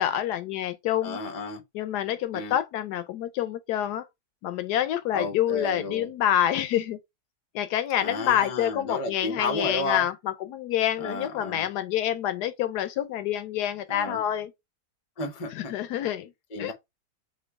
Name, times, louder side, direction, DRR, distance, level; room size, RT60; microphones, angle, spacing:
voice 1, 0.0-1.2 1.7-4.0 4.4-7.0 7.5-14.5 15.6-16.3 16.6-16.7, left 11 dB, 80° left, 1.1 m, -27 dB
voice 2, 1.0-1.6 2.3-2.5 5.1-6.1 8.0-10.1 11.0-11.7 13.9-14.2 15.2-15.7 16.5-16.7, left 2 dB, 35° left, 0.5 m, -32 dB
4.5 x 2.7 x 3.5 m
omnidirectional pair, 1.7 m